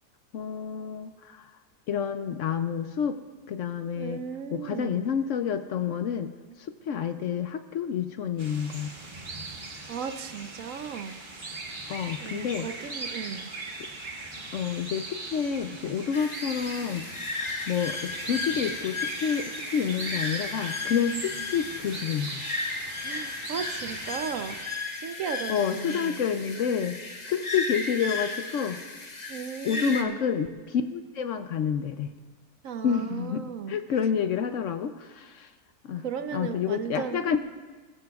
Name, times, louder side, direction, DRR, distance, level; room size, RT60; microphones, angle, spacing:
voice 1, 0.3-1.5 1.9-3.2 3.5-4.2 4.5-6.3 6.6-8.9 11.9-12.7 14.5-17.0 17.7-22.4 25.5-27.0 27.3-28.8 29.6-32.1 32.8-35.5 35.8-36.0 36.3-37.4, left 7 dB, 65° left, 9 dB, 0.8 m, -29 dB
voice 2, 3.9-5.1 9.9-11.6 12.2-13.5 23.0-24.6 25.0-26.2 26.9-27.0 29.3-30.2 32.6-33.8 36.0-37.2, right 7 dB, 65° right, 9 dB, 1.0 m, -36 dB
sound 1, 8.4-24.6, right 2 dB, 35° right, 1.5 m, -39 dB
sound 2, 16.1-30.0, left 3 dB, 30° left, 1.1 m, -35 dB
21.0 x 14.5 x 2.3 m, 1.4 s
omnidirectional pair, 1.6 m